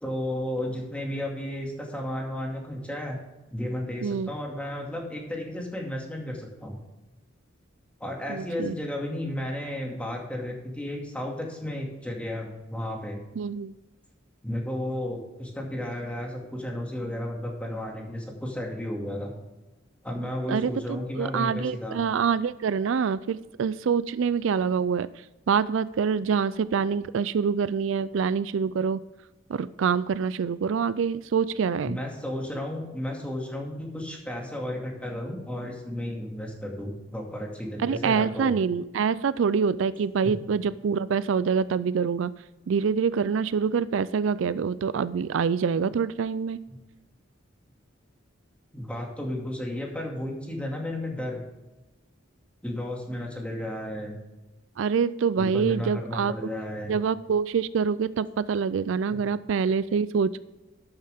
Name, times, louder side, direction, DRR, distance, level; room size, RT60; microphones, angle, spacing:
voice 1, 0.0-3.2 3.5-6.8 8.0-13.2 14.4-19.3 20.0-22.0 31.8-38.6 40.2-40.3 46.7-46.8 48.7-51.4 52.6-54.2 55.4-57.0 59.1-59.3, left 1 dB, 5° left, 0 dB, 2.2 m, -33 dB
voice 2, 8.3-8.7 13.4-13.7 20.5-25.1 25.5-29.0 29.5-32.0 37.8-42.3 42.7-46.6 54.8-56.3 56.9-60.4, right 6 dB, 70° right, 16 dB, 0.4 m, -26 dB
12.0 x 9.0 x 3.6 m, 1.1 s
head